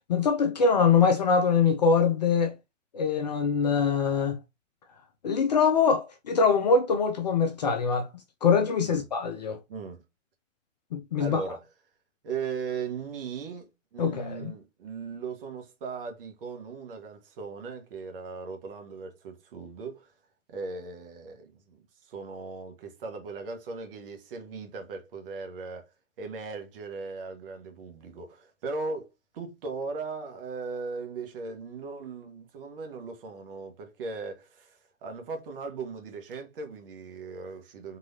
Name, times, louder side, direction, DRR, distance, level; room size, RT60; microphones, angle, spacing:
voice 1, 0.1-2.5 2.9-4.4 5.2-8.1 8.4-9.6 10.9-11.4 14.0-14.5, left 5 dB, 35° left, 0.4 m, -23 dB
voice 2, 9.7-10.0 11.2-11.6 12.2-13.7 13.9-20.1 20.5-25.9 26.2-29.1 29.3-38.0, right 4 dB, 45° right, 1.3 m, -38 dB
4.0 x 2.8 x 2.7 m
figure-of-eight pair, 120°, 39 cm